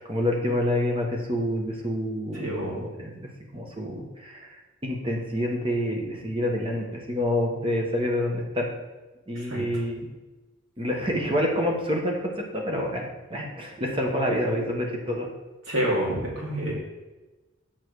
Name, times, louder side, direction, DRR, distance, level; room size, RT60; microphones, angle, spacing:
voice 1, 0.0-4.5 4.8-8.7 9.3-10.0 10.8-15.3, left 1 dB, 25° right, 0 dB, 1.4 m, -27 dB
voice 2, 2.3-2.7 9.3-9.6 15.7-16.7, right 1 dB, 85° right, -5 dB, 3.0 m, -28 dB
7.5 x 5.9 x 4.8 m, 1.2 s
head